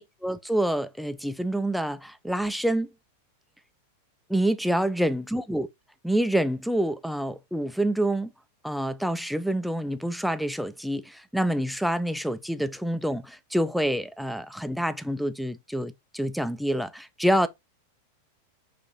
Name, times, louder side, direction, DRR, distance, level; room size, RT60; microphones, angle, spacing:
voice 1, 0.0-2.9 4.3-5.7 6.0-8.3 8.6-17.5, right 1 dB, ahead, 0.4 m, -27 dB
6.2 x 2.6 x 3.1 m
figure-of-eight pair, 90°, 0 cm